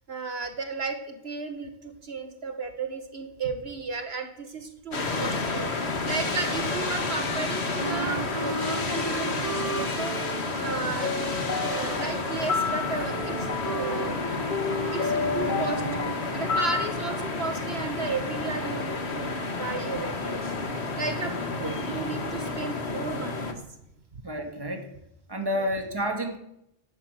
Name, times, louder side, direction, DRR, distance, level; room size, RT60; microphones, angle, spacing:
voice 1, 0.1-11.1 11.6-14.2 14.9-15.9 16.3-20.6 21.0-23.6 24.1-24.2 25.6-25.7, right 4 dB, 75° right, 6 dB, 1.9 m, -34 dB
sound 1, 4.9-23.5, left 3 dB, 90° left, 2.0 m, -31 dB
Wind instrument woodwind instrument, 7.8-16.2, right 3 dB, 40° right, 0.9 m, -36 dB
sound 2, 11.0-16.9, left 6 dB, 50° left, 1.1 m, -31 dB
voice 2, 21.3-22.0 24.2-24.9 25.3-26.4, equal, 20° right, 5 dB, 2.1 m, -31 dB
17.0 x 11.0 x 6.5 m, 0.81 s
omnidirectional pair, 1.1 m